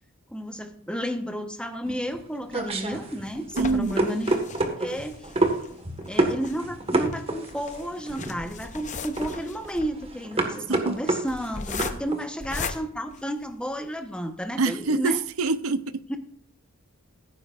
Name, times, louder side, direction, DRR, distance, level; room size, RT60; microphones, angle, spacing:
voice 1, 0.3-4.3 4.8-5.2 6.1-15.2 16.1-16.2, equal, 5° left, 1.0 m, -32 dB
sound 1, 1.8-12.2, right 2 dB, 30° right, 1.6 m, -28 dB
sound 2, 2.6-13.9 14.5-14.6 14.9-15.0 15.3-15.5, left 4 dB, 35° left, 0.8 m, -39 dB
voice 2, 3.6-4.0 10.7-11.0 14.6-16.0, right 3 dB, 80° right, 0.7 m, -25 dB
16.5 x 9.7 x 2.5 m
head